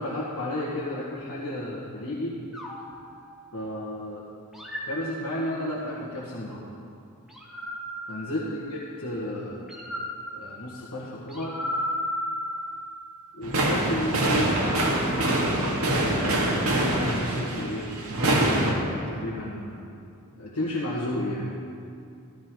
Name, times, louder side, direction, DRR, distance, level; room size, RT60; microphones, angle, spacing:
voice 1, 0.0-2.4 3.5-4.2 4.9-6.7 8.1-9.6 10.3-11.6 13.3-17.9 18.2-19.8 20.4-21.5, left 1 dB, 80° left, -6 dB, 1.7 m, -33 dB
sound 1, 2.5-3.9 4.5-5.8 7.3-9.0 9.7-13.2, equal, ahead, 1.8 m, -35 dB
sound 2, 13.4-18.7, right 1 dB, 80° right, 2.0 m, -24 dB
14.0 x 14.0 x 3.8 m, 2.5 s
head